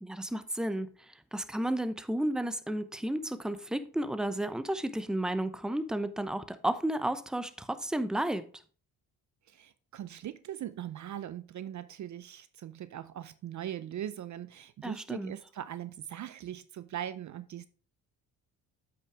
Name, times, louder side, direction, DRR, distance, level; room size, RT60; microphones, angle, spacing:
voice 1, 0.0-0.9 1.3-8.4 14.8-15.3, right 1 dB, ahead, 0.8 m, -32 dB
voice 2, 9.5-17.7, right 11 dB, 50° right, 0.5 m, -40 dB
8.3 x 5.8 x 3.4 m
supercardioid pair, 65°, 39 cm